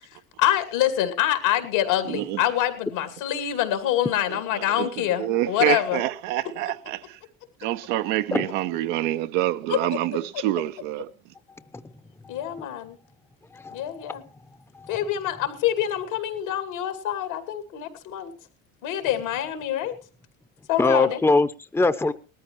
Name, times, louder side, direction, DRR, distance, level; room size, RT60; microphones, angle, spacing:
voice 1, 0.4-6.0 9.7-9.8 12.3-13.0 13.7-14.2 14.9-18.3 18.8-19.9 20.7-21.2, left 11 dB, 80° left, 2.6 m, -25 dB
voice 2, 2.1-2.4 4.3-7.2 7.6-11.1, right 14 dB, 75° right, 0.9 m, -27 dB
voice 3, 12.2-12.7 13.5-13.8 14.7-15.0 20.8-22.1, left 3 dB, 5° left, 0.7 m, -23 dB
19.0 x 13.5 x 3.1 m
hypercardioid pair, 75°, 39 cm